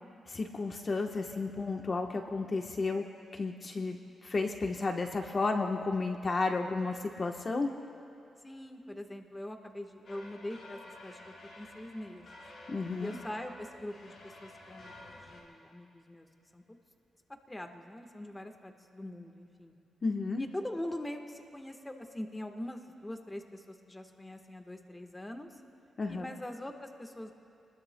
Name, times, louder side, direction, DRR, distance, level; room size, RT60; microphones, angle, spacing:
voice 1, 0.3-3.0 3.3-4.0 4.2-7.7 12.7-13.2 20.0-20.5 26.0-26.3, left 3 dB, 40° left, 3 dB, 1.0 m, -32 dB
voice 2, 3.7-4.1 8.4-12.4 13.0-16.3 16.5-16.8 17.5-19.7 20.4-25.6 26.1-27.3, left 1 dB, 15° left, 5 dB, 1.3 m, -43 dB
sound 1, 10.0-15.4, left 2 dB, 65° left, 4.8 m, -51 dB
28.5 x 21.0 x 2.2 m, 2.6 s
cardioid pair, 85°, 0 cm